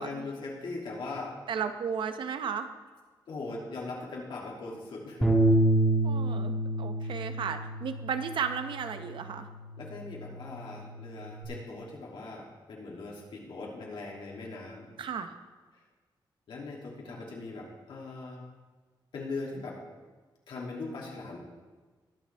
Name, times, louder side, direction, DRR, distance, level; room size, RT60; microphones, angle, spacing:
voice 1, 0.0-1.3 3.3-5.4 7.0-7.2 9.8-14.9 16.5-18.4 19.1-19.8 20.5-21.4, left 3 dB, 80° left, -3 dB, 2.7 m, -40 dB
voice 2, 1.5-2.7 6.0-9.5 15.0-15.3, right 7 dB, 75° right, 9 dB, 0.8 m, -34 dB
Bass guitar, 5.2-11.5, right 1 dB, 5° right, 1.7 m, -29 dB
20.0 x 6.9 x 3.4 m, 1.3 s
wide cardioid pair, 140°, 8 cm